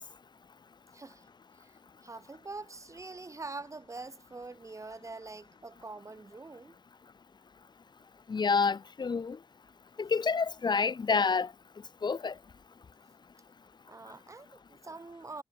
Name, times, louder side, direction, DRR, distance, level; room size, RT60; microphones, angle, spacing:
voice 1, 0.9-1.3 1.5-6.8 13.9-15.4, right 3 dB, 40° right, 2.6 m, -45 dB
voice 2, 8.3-9.4 10.0-11.5 12.0-12.3, left 5 dB, 60° left, 1.1 m, -28 dB
wide cardioid pair, 85°, 8 cm